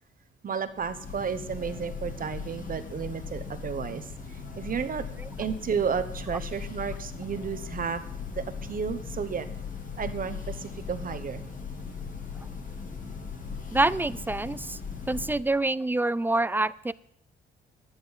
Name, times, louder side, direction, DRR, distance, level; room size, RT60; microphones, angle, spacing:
voice 1, 0.4-5.1 5.4-8.0 8.3-9.5 10.0-11.4, right 6 dB, 45° right, 10 dB, 1.0 m, -32 dB
Church bell, 0.7-15.6, left 5 dB, 40° left, 2.1 m, -38 dB
voice 2, 13.7-14.8 15.1-16.9, right 2 dB, 10° right, 18 dB, 0.3 m, -26 dB
10.0 x 9.8 x 5.5 m, 0.69 s
cardioid pair, 90°, 20 cm